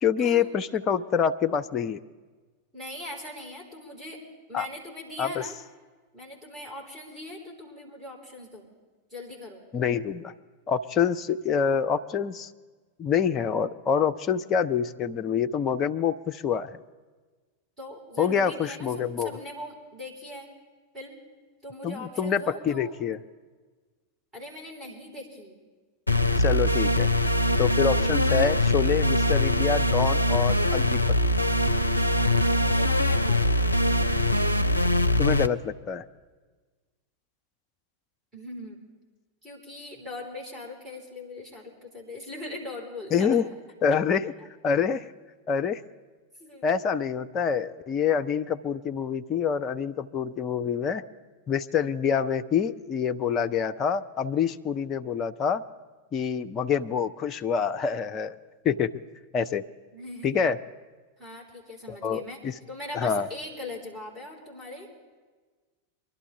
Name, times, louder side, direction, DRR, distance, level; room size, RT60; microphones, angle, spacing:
voice 1, 0.0-2.0 4.5-4.7 5.2-5.5 9.7-10.3 10.7-12.5 13.0-16.8 18.2-19.3 21.8-23.2 26.4-27.1 27.6-31.2 35.2-36.0 43.1-43.4 43.8-44.3 44.6-45.0 45.5-45.8 46.6-51.1 51.5-55.6 56.1-58.4 58.6-58.9 59.3-59.6 60.2-60.6 61.9-62.5 62.9-63.3, left 7 dB, 30° left, 8 dB, 0.5 m, -26 dB
voice 2, 2.7-4.2 4.5-5.6 6.1-8.6 9.1-9.6 17.8-18.9 19.2-20.5 20.9-21.2 21.6-22.9 24.3-25.6 32.2-33.5 38.3-38.8 39.4-43.4 46.4-46.7 59.9-60.3 61.2-62.4 62.7-64.9, left 1 dB, 15° right, -2 dB, 4.2 m, -40 dB
sound 1, 26.1-35.5, left 1 dB, 85° left, 0.4 m, -23 dB
23.5 x 12.0 x 3.4 m, 1.4 s
figure-of-eight pair, 90°, 0 cm